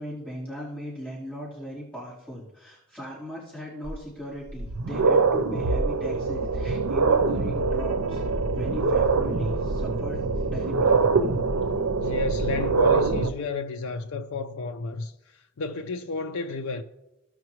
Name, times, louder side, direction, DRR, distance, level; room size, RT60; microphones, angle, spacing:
voice 1, 0.0-10.2 10.5-11.1, equal, 5° left, 3.6 m, -38 dB
sound 1, 3.9-4.0 4.5-13.3, right 4 dB, 90° right, 0.7 m, -24 dB
voice 2, 12.0-16.8, left 4 dB, 70° left, 0.5 m, -32 dB
16.5 x 6.0 x 3.1 m
head